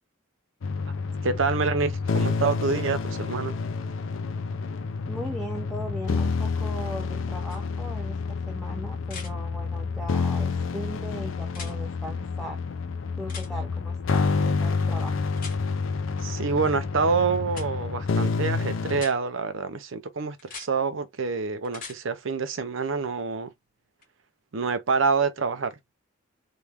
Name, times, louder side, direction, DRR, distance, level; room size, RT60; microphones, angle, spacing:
sound 1, 0.6-19.0, left 4 dB, 75° left, 0.5 m, -29 dB
voice 1, 1.2-3.6 16.2-23.5 24.5-25.8, right 5 dB, 65° right, 0.6 m, -27 dB
voice 2, 5.1-12.6 13.2-15.3, equal, ahead, 0.6 m, -38 dB
sound 2, 7.5-7.6 9.0-9.3 11.5-11.7 13.3-13.5 15.4-15.6 17.5-17.7 18.9-19.1 20.4-20.7 21.6-22.0 24.0-24.1, left 5 dB, 45° left, 1.5 m, -40 dB
3.1 x 2.2 x 3.4 m
head